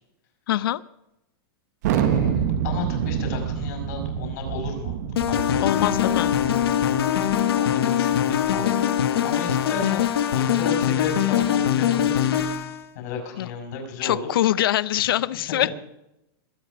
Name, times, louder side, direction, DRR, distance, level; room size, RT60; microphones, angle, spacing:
voice 1, 0.5-0.8 5.6-6.4 13.4-13.5 14.0-15.7, left 13 dB, 70° left, 19 dB, 0.6 m, -23 dB
Thunder, 1.8-7.0, right 8 dB, 45° right, 1.4 m, -26 dB
voice 2, 1.9-5.0 5.3-6.1 7.2-8.9 9.2-10.1 10.3-12.4 13.0-14.3 15.0-15.1 15.6-15.7, left 5 dB, 45° left, 3 dB, 5.4 m, -33 dB
sound 1, 5.2-12.8, left 10 dB, 85° left, 1.6 m, -22 dB
22.0 x 8.6 x 5.0 m, 0.86 s
supercardioid pair, 170°, 12 cm